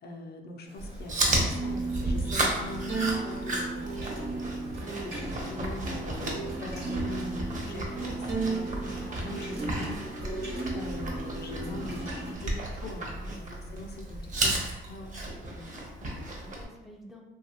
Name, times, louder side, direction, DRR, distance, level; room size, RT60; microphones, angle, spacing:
voice 1, 0.0-4.3 4.6-10.0 10.7-15.2, left 2 dB, 55° left, 2 dB, 0.5 m, -42 dB
sound 1, 0.7-12.3, right 3 dB, 55° right, 1.1 m, -35 dB
Chewing mastication, 0.8-16.6, right 1 dB, 40° right, 0.8 m, -33 dB
voice 2, 13.3-13.7 15.4-17.2, equal, ahead, 0 dB, 0.4 m, -49 dB
2.8 x 2.3 x 2.8 m, 1.0 s
cardioid pair, 90°, 20 cm